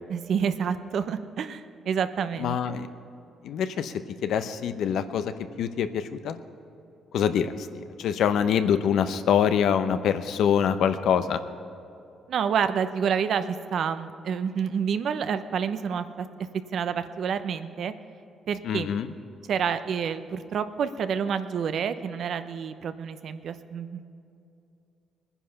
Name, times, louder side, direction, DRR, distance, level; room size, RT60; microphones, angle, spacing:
voice 1, 0.1-2.7 12.3-16.3 16.7-17.9 18.5-18.9 19.5-24.1, right 7 dB, 65° right, 10 dB, 0.8 m, -28 dB
voice 2, 2.4-2.9 3.4-3.9 4.2-5.3 5.6-6.4 7.1-11.4 18.6-19.1, left 8 dB, 75° left, 10 dB, 0.8 m, -25 dB
20.0 x 10.0 x 5.7 m, 2.7 s
cardioid pair, 90°, 0 cm